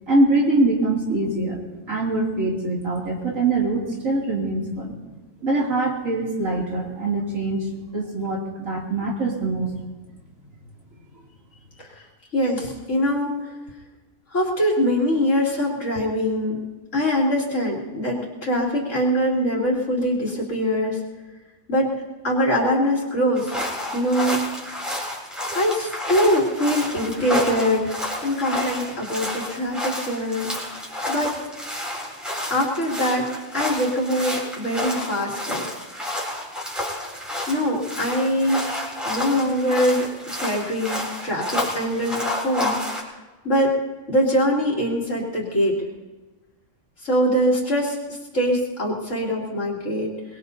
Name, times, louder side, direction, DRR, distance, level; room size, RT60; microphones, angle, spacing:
voice 1, 0.1-1.6 1.9-5.0 5.4-7.7 7.9-9.7, right 2 dB, 70° right, -3 dB, 3.3 m, -23 dB
voice 2, 12.3-13.4 14.3-16.6 16.9-21.0 21.7-22.0 22.2-23.5 23.9-24.4 25.5-30.6 31.1-31.4 32.5-33.3 33.5-35.7 37.5-40.1 40.4-42.8 43.4-43.8 44.1-45.8 47.0-50.1, equal, 60° left, -3 dB, 3.4 m, -23 dB
sound 1, 23.4-43.0, left 1 dB, ahead, 3.8 m, -30 dB
23.5 x 21.0 x 2.8 m, 1.2 s
omnidirectional pair, 1.4 m